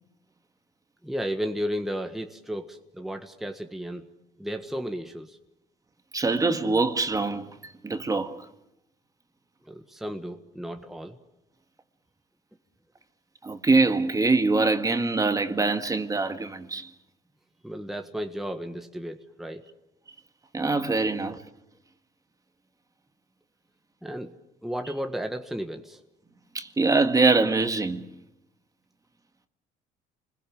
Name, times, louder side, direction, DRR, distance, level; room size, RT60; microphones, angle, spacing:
voice 1, 1.0-4.1 4.4-5.4 9.7-11.2 17.6-19.6 21.0-21.1 24.0-24.3 24.6-26.0, equal, ahead, 1.5 m, -33 dB
voice 2, 6.1-8.5 13.4-16.9 20.5-21.4 26.5-28.0, right 3 dB, 20° right, 1.8 m, -24 dB
29.0 x 21.5 x 7.5 m
cardioid pair, 110°, 17 cm